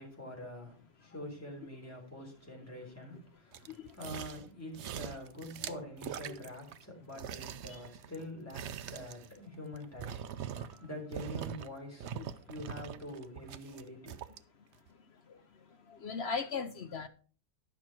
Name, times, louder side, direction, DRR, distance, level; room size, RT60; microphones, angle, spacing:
voice 1, 0.0-10.2 10.7-12.1 12.5-14.2, left 1 dB, 10° left, -1 dB, 3.6 m, -45 dB
sound 1, 3.5-4.5 4.7-6.8 7.1-10.9 11.1-11.7 12.0-14.4 14.9-15.0, right 8 dB, 65° right, 0.7 m, -43 dB
voice 2, 16.0-17.1, left 5 dB, 55° left, 9 dB, 0.8 m, -37 dB
11.5 x 6.2 x 4.4 m, 0.40 s
omnidirectional pair, 1.7 m